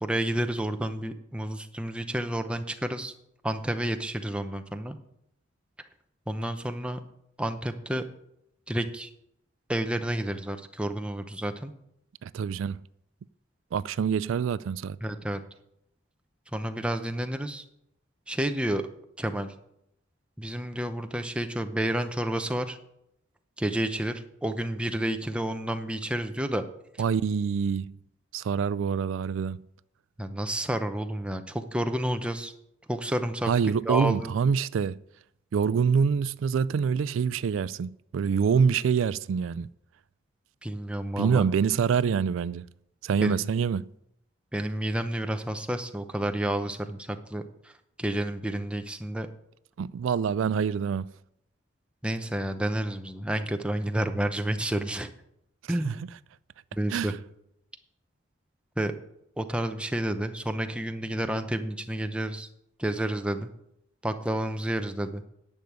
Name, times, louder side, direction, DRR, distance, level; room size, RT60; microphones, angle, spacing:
voice 1, 0.0-3.1 3.4-5.0 6.3-7.0 7.4-8.0 8.7-9.1 9.7-11.7 15.0-15.4 16.5-17.6 18.3-18.8 19.2-19.5 20.4-22.8 23.6-26.6 30.2-32.5 32.9-34.3 40.6-41.4 43.2-43.5 44.5-47.4 48.0-49.3 52.0-55.1 55.7-56.0 56.7-57.1 58.8-58.9 59.4-62.5 62.8-63.5 64.0-65.2, right 1 dB, 5° right, 0.7 m, -30 dB
voice 2, 12.2-12.8 13.7-15.0 27.0-28.0 28.3-29.6 33.4-35.0 35.5-39.7 41.2-42.7 43.0-43.9 49.8-51.1 55.7-55.9 56.9-57.2, right 6 dB, 80° right, 0.3 m, -26 dB
10.5 x 6.4 x 8.2 m
head